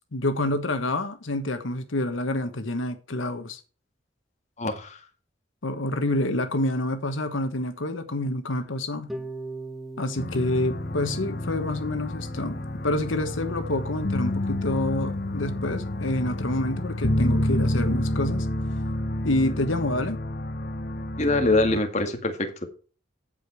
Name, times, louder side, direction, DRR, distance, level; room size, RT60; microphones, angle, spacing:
voice 1, 0.1-3.6 5.6-9.1 10.0-12.6 12.8-18.5 19.2-20.2, left 1 dB, 85° left, 1.3 m, -27 dB
voice 2, 4.6-5.0 21.2-22.7, left 2 dB, 40° left, 2.0 m, -24 dB
Harp, 9.1-15.2, right 2 dB, ahead, 1.2 m, -42 dB
sound 1, 10.2-21.8, left 1 dB, 55° left, 1.2 m, -29 dB
15.0 x 5.2 x 4.6 m
head